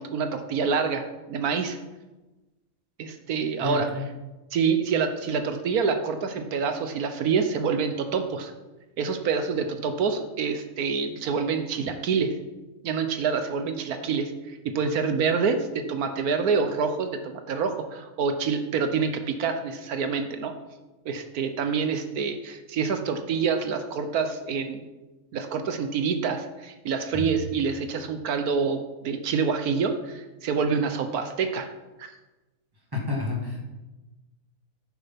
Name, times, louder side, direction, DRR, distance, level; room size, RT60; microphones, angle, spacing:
voice 1, 0.0-1.8 3.0-4.1 4.5-8.5 9.0-12.4 12.8-20.5 21.0-24.9 25.3-31.7 32.0-32.1, right 5 dB, 80° right, 7 dB, 1.4 m, -27 dB
voice 2, 3.6-4.0 27.1-27.2 32.9-33.6, left 4 dB, 15° right, -1 dB, 2.5 m, -29 dB
14.5 x 6.7 x 5.8 m, 1.1 s
omnidirectional pair, 1.5 m